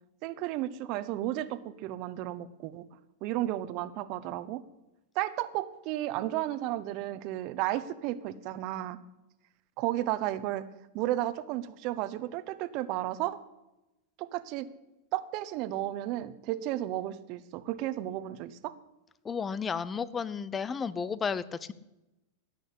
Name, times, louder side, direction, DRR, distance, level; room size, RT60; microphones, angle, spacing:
voice 1, 0.2-2.9 3.2-4.6 5.1-9.0 9.8-10.7 10.9-13.4 14.2-14.7 15.1-18.7, right 14 dB, 50° right, 14 dB, 1.0 m, -33 dB
voice 2, 19.2-21.7, left 6 dB, 20° left, 17 dB, 0.7 m, -33 dB
18.0 x 6.5 x 8.5 m, 0.97 s
supercardioid pair, 130°, 0 cm